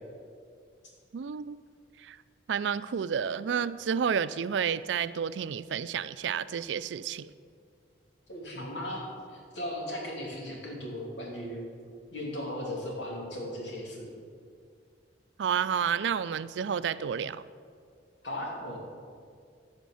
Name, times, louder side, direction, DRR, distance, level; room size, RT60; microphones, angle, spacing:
voice 1, 1.1-1.6 2.0-2.2 2.5-7.3 15.4-17.4, right 7 dB, 85° right, 15 dB, 0.4 m, -30 dB
voice 2, 8.3-9.1 9.3-11.7 12.1-14.1 18.2-18.8, left 1 dB, 85° left, -2 dB, 2.6 m, -37 dB
14.5 x 5.2 x 6.3 m, 2.2 s
head